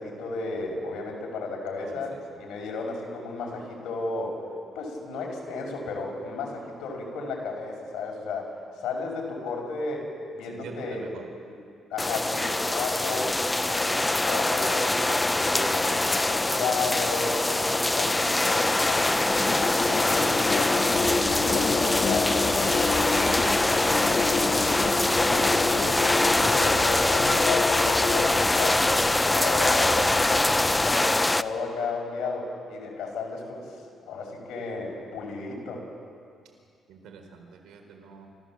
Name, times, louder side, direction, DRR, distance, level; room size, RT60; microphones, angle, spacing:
voice 1, 0.0-4.4 4.7-8.5 8.8-11.0 11.5-11.6 11.9-15.1 15.3-19.2 19.6-24.8 25.2-33.6 34.1-35.8, left 3 dB, 80° left, 0 dB, 5.8 m, -33 dB
voice 2, 10.4-11.3 36.9-38.3, right 5 dB, 80° right, 3 dB, 4.2 m, -45 dB
sound 1, 12.0-31.4, left 2 dB, 15° left, 0.6 m, -24 dB
sound 2, 18.9-28.4, left 4 dB, 50° left, 1.8 m, -30 dB
sound 3, 20.9-30.9, left 1 dB, 35° left, 5.6 m, -39 dB
29.0 x 15.5 x 7.6 m, 2.3 s
cardioid pair, 90°, 0 cm